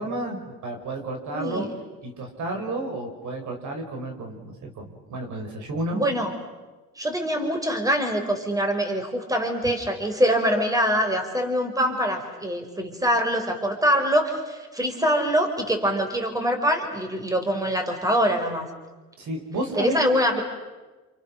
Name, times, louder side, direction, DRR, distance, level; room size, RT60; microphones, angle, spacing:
voice 1, 0.0-1.7 2.0-6.0 19.2-20.0, right 1 dB, 70° right, 2 dB, 5.6 m, -31 dB
voice 2, 1.3-1.7 5.9-6.3 7.0-18.7 19.8-20.4, equal, 10° right, 4 dB, 4.8 m, -24 dB
29.0 x 28.0 x 6.5 m, 1.2 s
cardioid pair, 90°, 30 cm